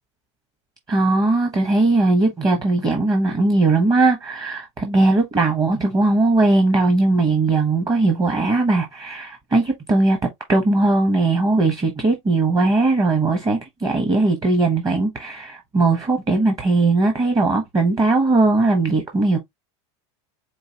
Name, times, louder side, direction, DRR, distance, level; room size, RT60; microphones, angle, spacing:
voice 1, 0.9-10.2 10.5-19.4, right 2 dB, 25° right, 0.9 m, -19 dB
4.7 x 2.6 x 2.8 m
supercardioid pair, 130°, 15 cm